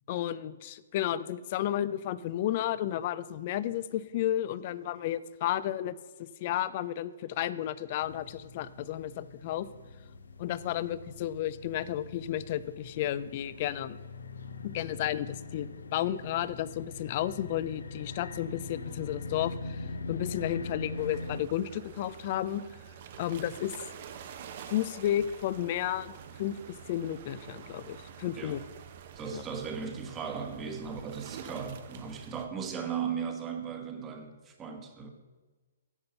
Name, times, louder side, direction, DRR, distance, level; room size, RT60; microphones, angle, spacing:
voice 1, 0.1-5.9 6.4-9.7 10.4-14.0 14.6-22.6 23.2-23.8 24.7-26.1 26.4-28.6 29.3-29.4, left 12 dB, 45° left, 16 dB, 0.4 m, -32 dB
sound 1, 8.0-21.4, left 3 dB, 75° left, 0.7 m, -42 dB
sound 2, 21.0-32.4, right 8 dB, 45° right, 0.8 m, -47 dB
voice 2, 29.1-35.1, right 6 dB, 20° right, 5 dB, 1.2 m, -37 dB
9.8 x 5.3 x 6.8 m, 1.3 s
figure-of-eight pair, 125°, 0 cm